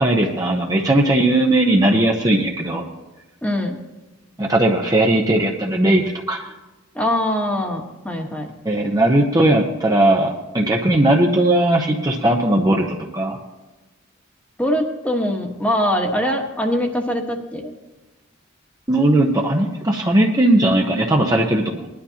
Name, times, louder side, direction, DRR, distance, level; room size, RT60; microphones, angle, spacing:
voice 1, 0.0-2.9 4.4-6.5 8.6-13.4 18.9-21.9, right 1 dB, 20° right, 1 dB, 0.8 m, -18 dB
voice 2, 3.4-3.8 6.9-8.5 14.6-17.7, equal, 5° left, 2 dB, 1.3 m, -22 dB
20.0 x 11.5 x 2.9 m, 1.1 s
head